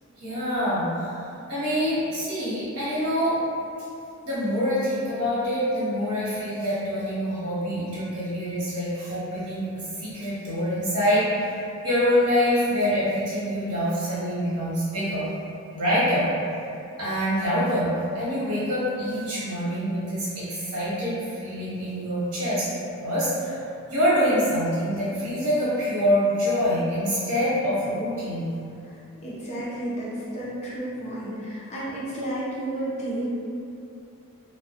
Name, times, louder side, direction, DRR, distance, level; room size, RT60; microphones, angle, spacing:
voice 1, 0.2-1.1 1.5-3.4 4.2-11.5 11.8-15.3 15.7-16.3 17.0-22.7 23.0-23.6 23.9-28.5, equal, 85° right, -9 dB, 0.9 m, -25 dB
voice 2, 29.2-33.3, right 1 dB, 30° left, -8 dB, 0.5 m, -32 dB
2.2 x 2.1 x 2.7 m, 2.6 s
head